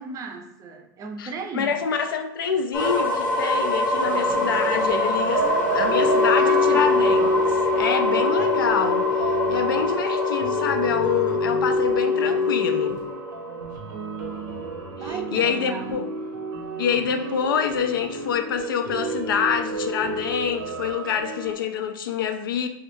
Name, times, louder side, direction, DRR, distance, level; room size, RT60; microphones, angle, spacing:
voice 1, 0.0-1.7 5.3-6.9 15.0-16.0, right 4 dB, 30° right, 0.5 m, -36 dB
voice 2, 1.2-5.5 5.7-13.0 15.0-16.1 16.8-22.7, left 7 dB, 90° left, 0.4 m, -26 dB
sound 1, 2.7-14.5, left 1 dB, 10° left, 0.7 m, -26 dB
sound 2, 4.0-21.5, right 4 dB, 75° right, 0.6 m, -31 dB
Wind instrument woodwind instrument, 5.9-13.0, left 5 dB, 70° left, 0.8 m, -24 dB
3.1 x 2.3 x 3.0 m
hypercardioid pair, 115°, 11 cm